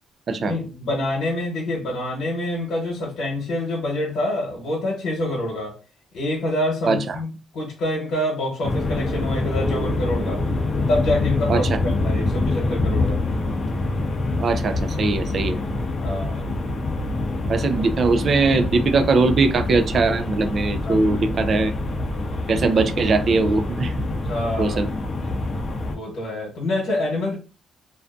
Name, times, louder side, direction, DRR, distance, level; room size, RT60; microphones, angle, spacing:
voice 1, 0.3-5.8 6.1-10.4 10.9-13.2 16.0-16.4 20.8-21.5 24.3-24.8 25.9-27.3, left 1 dB, 75° left, 1.0 m, -26 dB
sound 1, 8.6-26.0, left 2 dB, 40° left, 0.6 m, -25 dB
voice 2, 14.4-15.6 17.5-21.7 22.5-23.9 24.6-24.9, right 3 dB, 50° right, 0.4 m, -20 dB
2.5 x 2.3 x 2.4 m
cardioid pair, 90°, 0 cm